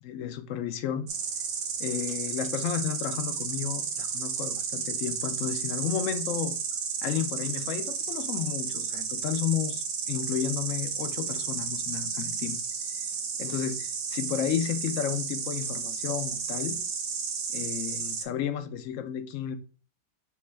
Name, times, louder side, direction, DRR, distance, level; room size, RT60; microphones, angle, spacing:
voice 1, 0.0-1.1 1.8-6.6 7.0-12.6 13.4-16.8 17.5-19.6, left 9 dB, 85° left, 1.0 m, -32 dB
Insect, 1.1-18.2, right 6 dB, 70° right, 1.0 m, -33 dB
4.6 x 3.1 x 3.3 m
omnidirectional pair, 1.3 m